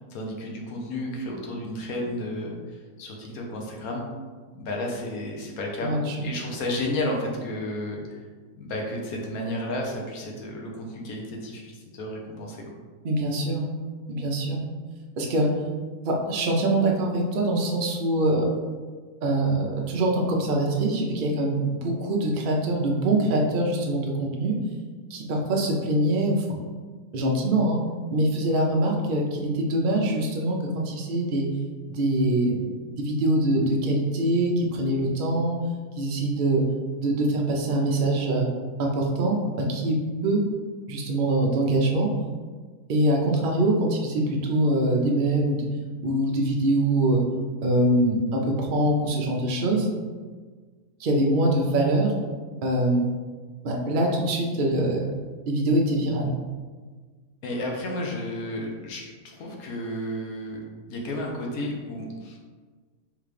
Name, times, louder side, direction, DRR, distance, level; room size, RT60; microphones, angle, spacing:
voice 1, 0.0-4.1 4.5-6.0 6.2-8.2 8.6-12.6 57.4-62.4, left 1 dB, 75° left, -1 dB, 1.2 m, -32 dB
voice 2, 5.8-6.3 13.0-13.6 14.1-14.6 15.2-15.5 16.0-18.4 19.2-24.5 25.1-26.4 27.1-27.8 28.1-30.6 30.8-31.5 31.9-32.6 33.0-35.6 36.0-36.6 37.0-38.5 38.8-40.0 40.2-40.4 40.9-42.1 42.9-45.7 46.0-47.2 47.6-49.9 51.0-52.1 52.6-53.0 53.6-55.0 55.5-56.3, right 1 dB, 55° right, -1 dB, 0.6 m, -23 dB
3.6 x 3.2 x 3.2 m, 1.5 s
omnidirectional pair, 1.6 m